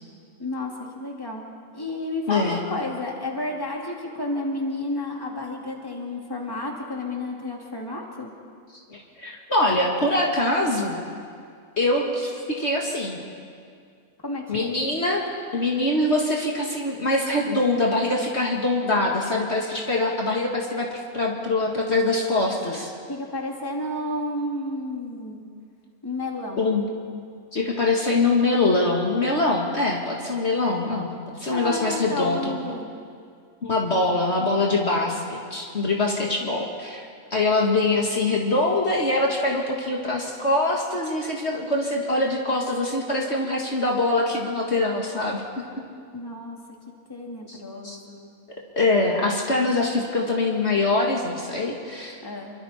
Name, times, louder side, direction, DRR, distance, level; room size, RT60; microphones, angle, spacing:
voice 1, 0.4-1.4 1.7-8.3 14.2-14.7 22.7-22.8 23.1-25.4 26.0-26.6 31.4-32.9 46.1-46.6 47.1-48.2 52.2-52.5, left 1 dB, 15° left, -1 dB, 2.5 m, -31 dB
voice 2, 2.3-2.6 8.9-11.0 11.8-13.2 14.5-22.9 26.6-26.9 27.5-31.1 31.4-32.6 33.6-45.4 47.5-47.6 47.8-48.0 48.8-52.2, left 2 dB, 50° left, -1 dB, 2.2 m, -23 dB
28.0 x 23.5 x 4.4 m, 2.2 s
omnidirectional pair, 1.5 m